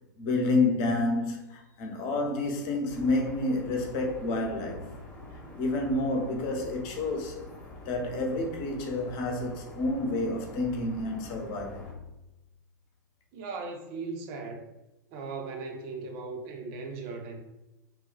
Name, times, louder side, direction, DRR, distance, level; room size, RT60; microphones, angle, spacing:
voice 1, 0.2-4.9 5.6-7.4 7.9-11.9, left 2 dB, 45° left, 0.8 m, -29 dB
sound 1, 2.9-11.9, left 1 dB, 15° left, 0.9 m, -46 dB
voice 2, 13.3-14.7 15.1-17.4, right 4 dB, 45° right, 0.6 m, -38 dB
2.7 x 2.2 x 3.9 m
figure-of-eight pair, 95°, 10 cm